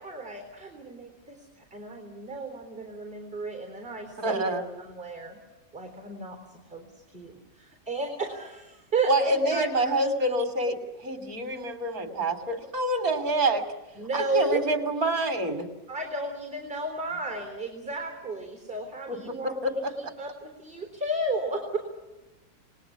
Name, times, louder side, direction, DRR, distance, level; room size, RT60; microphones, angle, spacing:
voice 1, 0.0-4.5 4.8-5.4 5.7-6.9 7.1-9.9 14.0-14.6 15.9-21.8, right 2 dB, 30° right, 4 dB, 4.0 m, -33 dB
voice 2, 4.2-4.6 9.1-13.7 14.1-15.7 19.1-19.2 19.4-20.1, right 1 dB, 50° right, 7 dB, 3.4 m, -27 dB
29.0 x 20.5 x 7.2 m, 1.1 s
omnidirectional pair, 1.9 m